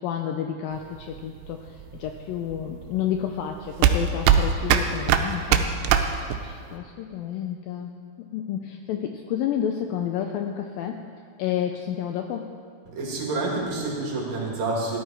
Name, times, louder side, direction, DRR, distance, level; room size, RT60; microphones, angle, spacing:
voice 1, 0.0-5.7 6.4-11.0 11.4-12.5, left 9 dB, 85° left, 4 dB, 2.1 m, -30 dB
sound 1, 0.7-6.7, right 8 dB, 85° right, 2.8 m, -22 dB
voice 2, 12.9-15.0, right 2 dB, 60° right, -3 dB, 3.9 m, -28 dB
16.0 x 12.0 x 4.5 m, 2.1 s
omnidirectional pair, 4.7 m